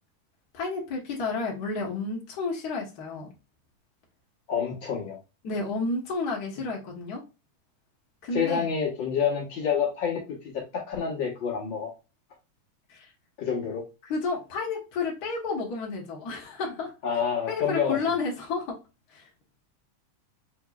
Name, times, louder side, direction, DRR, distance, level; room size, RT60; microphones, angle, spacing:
voice 1, 0.5-3.3 5.4-7.2 8.2-8.7 12.9-13.1 14.1-16.9 17.5-18.8 19.1-19.3, left 3 dB, 85° left, -1 dB, 0.8 m, -31 dB
voice 2, 4.5-5.2 8.3-11.9 13.4-13.9 17.0-18.2, left 7 dB, 60° left, -1 dB, 1.2 m, -28 dB
6.1 x 3.0 x 2.3 m, 0.28 s
omnidirectional pair, 3.7 m